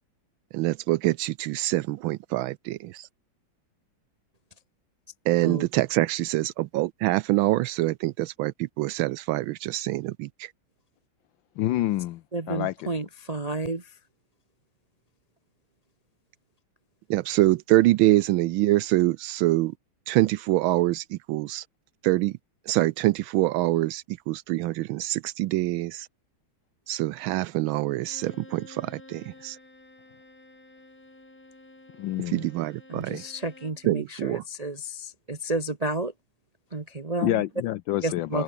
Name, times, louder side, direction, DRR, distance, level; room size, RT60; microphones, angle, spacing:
voice 1, 0.5-3.1 5.3-10.5 17.1-19.7 20.1-21.6 22.0-22.3 22.7-26.1 26.9-29.6 32.3-33.2 33.9-34.4, right 17 dB, 80° right, 1.4 m, -25 dB
voice 2, 11.6-12.2 12.5-12.9 32.0-32.5 37.2-38.4, left 14 dB, 75° left, 1.3 m, -27 dB
voice 3, 12.3-14.0 32.9-36.1 36.7-37.4 38.0-38.4, right 2 dB, 25° right, 1.1 m, -31 dB
Bowed string instrument, 27.9-33.9, left 2 dB, 45° left, 7.9 m, -51 dB
open air
omnidirectional pair, 2.2 m